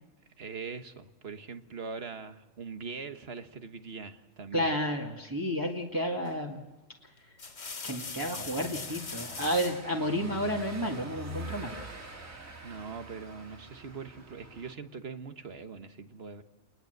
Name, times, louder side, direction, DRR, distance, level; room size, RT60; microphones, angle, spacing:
voice 1, 0.4-4.8 12.6-16.4, right 5 dB, 50° right, 8 dB, 1.5 m, -42 dB
voice 2, 4.5-6.6 7.8-11.8, equal, 15° right, -1 dB, 1.9 m, -31 dB
sound 1, 6.2-6.5 7.2-9.9 11.3-12.0, left 4 dB, 70° left, 3.1 m, -42 dB
Car passing by / Engine, 8.0-14.7, right 1 dB, 85° right, 3.1 m, -45 dB
30.0 x 20.0 x 8.0 m, 1.1 s
omnidirectional pair, 1.4 m